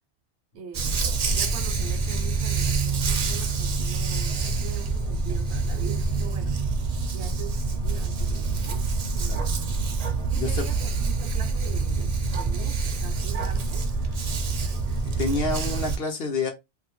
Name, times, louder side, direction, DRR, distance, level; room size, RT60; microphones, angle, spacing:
voice 1, 0.5-6.7 7.1-8.8 9.1-9.8 10.2-13.9, right 7 dB, 75° right, 0.8 m, -42 dB
Dog, 0.7-16.0, right 4 dB, 50° right, 0.5 m, -26 dB
voice 2, 10.4-10.7 15.0-16.5, left 2 dB, 60° left, 1.0 m, -28 dB
2.6 x 2.4 x 2.9 m
omnidirectional pair, 1.2 m